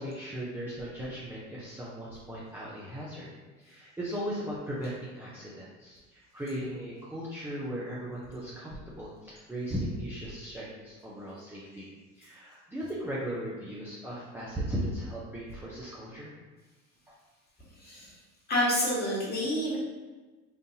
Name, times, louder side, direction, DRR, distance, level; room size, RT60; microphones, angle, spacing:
voice 1, 0.0-3.3 3.6-11.9 12.1-16.3 17.1-17.2, equal, 5° right, -7 dB, 0.6 m, -37 dB
voice 2, 18.5-19.8, equal, 25° left, -6 dB, 1.5 m, -28 dB
3.9 x 2.5 x 2.8 m, 1.3 s
hypercardioid pair, 80°, 38 cm